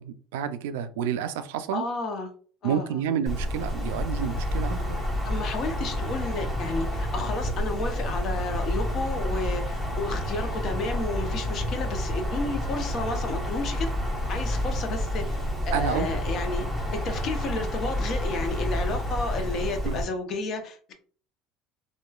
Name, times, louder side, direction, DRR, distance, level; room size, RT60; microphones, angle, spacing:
voice 1, 0.0-1.9 2.6-5.0 15.7-16.1 19.8-20.0, right 8 dB, 80° right, 0.3 m, -29 dB
voice 2, 1.7-2.3 2.6-2.9 5.2-13.9 14.3-15.4 15.6-16.7 16.9-20.9, left 3 dB, 50° left, 0.7 m, -32 dB
Wind, 3.3-20.0, left 1 dB, 5° left, 1.3 m, -29 dB
3.0 x 2.2 x 2.3 m
supercardioid pair, 95°, 0 cm